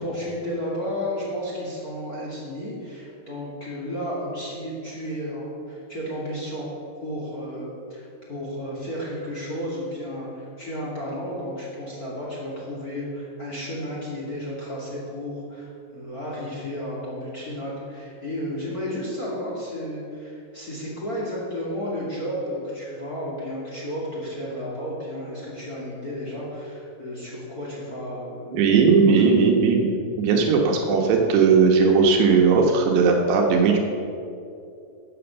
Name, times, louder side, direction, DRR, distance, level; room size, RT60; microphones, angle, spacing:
voice 1, 0.0-6.7 7.0-28.6, equal, 30° left, -5 dB, 2.0 m, -32 dB
voice 2, 28.5-29.9 30.2-33.8, right 5 dB, 75° right, 1 dB, 3.2 m, -18 dB
13.5 x 7.8 x 7.0 m, 2.6 s
omnidirectional pair, 5.1 m